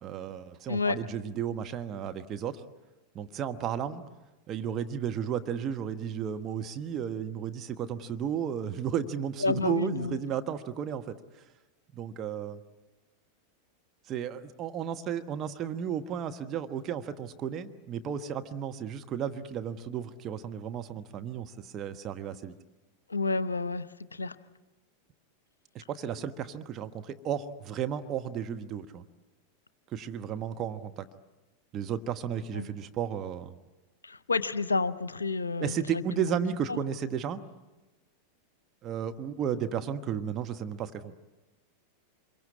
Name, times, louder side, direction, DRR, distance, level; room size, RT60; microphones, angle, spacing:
voice 1, 0.0-2.6 3.1-4.0 4.5-11.4 11.9-12.6 14.1-22.6 25.7-29.0 29.9-31.1 31.7-33.5 35.6-37.4 38.8-41.1, right 8 dB, 30° right, 8 dB, 1.1 m, -33 dB
voice 2, 9.4-10.2 23.1-23.9 24.1-24.4 32.5-32.7 34.0-36.4 36.7-36.8, left 3 dB, 75° left, 15 dB, 0.8 m, -30 dB
26.5 x 23.0 x 8.6 m, 1.1 s
figure-of-eight pair, 90°, 0 cm